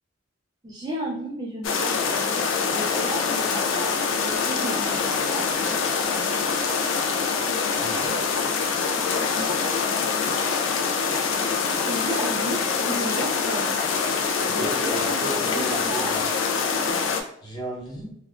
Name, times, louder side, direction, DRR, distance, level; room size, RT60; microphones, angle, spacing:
voice 1, 0.6-6.1 9.1-9.7 10.8-11.3 11.8-13.8 14.2-15.2 15.5-16.2, right 1 dB, 20° right, -3 dB, 0.3 m, -34 dB
sound 1, 1.6-17.2, left 5 dB, 65° left, 0.4 m, -25 dB
Bowed string instrument, 3.1-8.1, right 5 dB, 80° right, 0.8 m, -46 dB
voice 2, 7.8-8.2 14.4-16.2 17.4-18.1, right 1 dB, 20° left, -4 dB, 0.8 m, -35 dB
3.4 x 2.2 x 2.4 m, 0.74 s
head